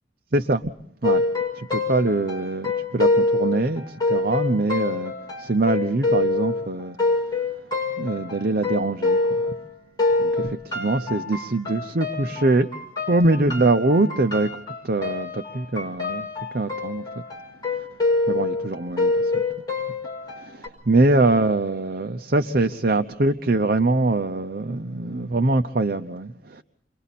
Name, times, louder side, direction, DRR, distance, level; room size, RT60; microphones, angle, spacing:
voice 1, 0.3-0.7 1.0-1.2 1.5-5.1 5.4-7.2 8.0-9.5 10.2-12.7 13.1-14.5 14.8-16.3 16.5-17.1 18.3-19.4 20.4-26.6, right 2 dB, 50° right, 0.8 m, -23 dB
sound 1, 1.0-9.7 10.0-20.7, left 3 dB, 20° left, 5.5 m, -26 dB
29.5 x 23.0 x 4.2 m
head